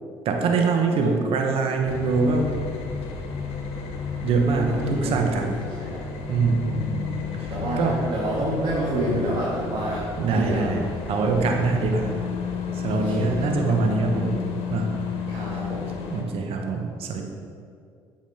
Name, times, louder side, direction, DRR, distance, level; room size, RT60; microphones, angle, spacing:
voice 1, 0.2-2.5 4.2-5.5 6.3-8.1 10.2-12.1 12.7-14.4 14.7-14.9 15.5-15.6 16.1-17.2, right 4 dB, 65° right, 3 dB, 1.0 m, -24 dB
sound 1, 1.9-16.2, left 6 dB, 70° left, 1.2 m, -32 dB
voice 2, 4.7-6.0 7.5-10.0 10.3-10.7 12.9-13.5 15.3-15.9, right 1 dB, 45° right, -7 dB, 2.1 m, -28 dB
7.9 x 5.2 x 5.2 m, 2.3 s
supercardioid pair, 65°, 11 cm